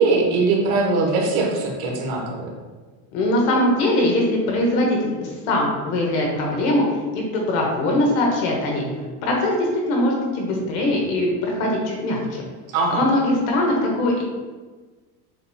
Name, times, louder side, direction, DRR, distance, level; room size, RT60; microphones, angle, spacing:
voice 1, 0.0-2.5 12.7-13.0, right 3 dB, 60° right, -1 dB, 1.3 m, -21 dB
voice 2, 3.1-6.8 7.1-8.9 9.2-12.4 12.9-14.2, left 1 dB, 55° left, -1 dB, 1.0 m, -21 dB
6.4 x 2.9 x 2.3 m, 1.3 s
supercardioid pair, 145°, 47 cm